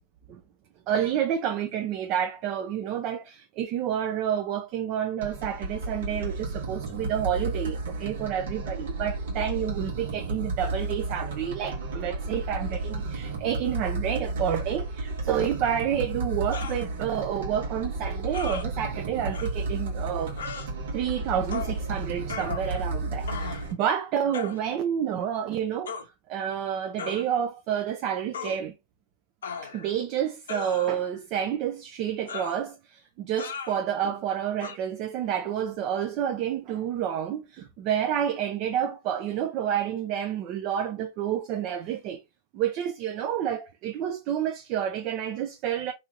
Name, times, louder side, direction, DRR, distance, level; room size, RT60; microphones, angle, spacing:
voice 1, 0.9-20.3 20.9-25.9 26.3-28.7 29.6-42.2 42.5-45.9, right 9 dB, 45° right, 0.5 m, -29 dB
sound 1, 5.2-23.7, right 2 dB, 75° right, 1.2 m, -32 dB
sound 2, 16.5-16.8 18.3-18.7 19.3-19.5 20.4-20.7 21.5-21.8 22.3-22.9 23.3-23.7 24.3-24.6 25.9-26.1 27.0-27.3 28.3-28.6 29.4-30.0 30.5-31.1 32.3-32.6 33.4-33.8 34.6-34.8, left 6 dB, 85° left, 0.6 m, -37 dB
3.0 x 2.7 x 2.5 m
hypercardioid pair, 120°, 0 cm